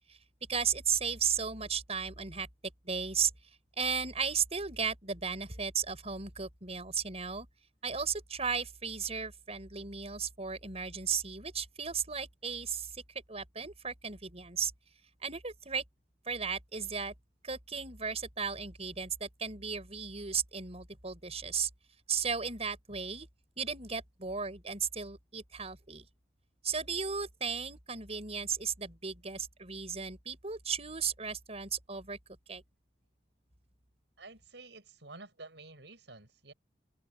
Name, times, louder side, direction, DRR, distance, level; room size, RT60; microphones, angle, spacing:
voice 1, 0.5-2.5 2.8-3.3 3.8-7.5 7.8-13.0 13.3-14.7 15.2-15.8 16.3-17.1 17.4-21.7 22.1-23.3 23.6-26.1 26.6-32.2 32.5-32.6, right 6 dB, 35° right, 6.1 m, -35 dB
voice 2, 34.2-36.5, right 3 dB, 75° right, 6.9 m, -50 dB
open air
head